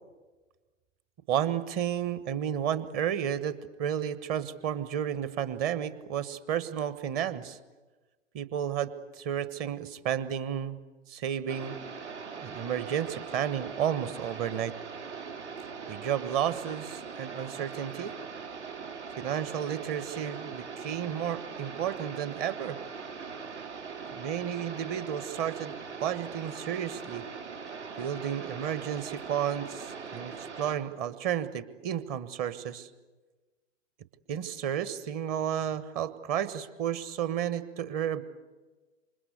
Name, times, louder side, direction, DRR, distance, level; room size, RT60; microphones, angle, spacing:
voice 1, 1.3-7.6 8.3-10.8 11.1-11.7 12.4-14.7 15.9-18.1 19.2-22.8 24.1-25.7 26.0-27.2 28.0-32.9 34.3-38.2, right 9 dB, 25° right, 14 dB, 1.4 m, -32 dB
sound 1, 11.5-30.8, right 5 dB, 65° right, 3.9 m, -41 dB
28.0 x 25.5 x 8.1 m, 1.2 s
figure-of-eight pair, 115°, 36 cm